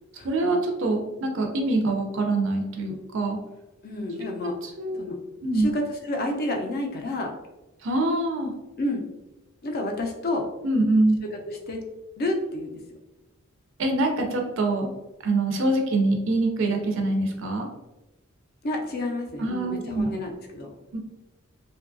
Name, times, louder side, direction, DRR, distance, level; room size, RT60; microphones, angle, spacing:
voice 1, 0.2-3.4 4.2-4.3 4.6-5.0 5.4-5.7 7.8-8.5 10.6-11.2 13.8-14.9 15.2-17.7 19.4-20.1 20.9-21.0, right 2 dB, 60° right, 2 dB, 0.4 m, -24 dB
voice 2, 3.8-4.5 5.0-5.2 5.5-7.3 8.8-9.0 9.6-10.5 11.3-11.8 12.2-12.8 18.6-20.7, left 1 dB, 45° left, 2 dB, 0.4 m, -29 dB
2.7 x 2.2 x 2.5 m, 1.0 s
head